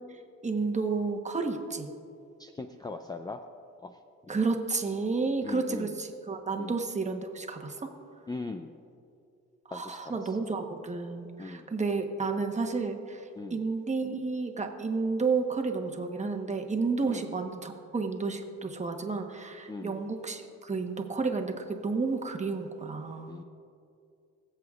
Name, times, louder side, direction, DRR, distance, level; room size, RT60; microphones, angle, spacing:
voice 1, 0.1-1.9 4.3-7.9 9.7-23.4, right 4 dB, 25° right, 3 dB, 1.1 m, -31 dB
voice 2, 2.4-3.4 3.8-4.0 5.4-5.9 6.6-6.8 8.3-8.7 9.7-10.4 11.4-11.7 13.4-13.6 17.0-17.3 19.7-20.0 23.3-23.4, left 3 dB, 15° left, 6 dB, 0.4 m, -40 dB
22.5 x 7.9 x 2.4 m, 2.5 s
cardioid pair, 90°, 30 cm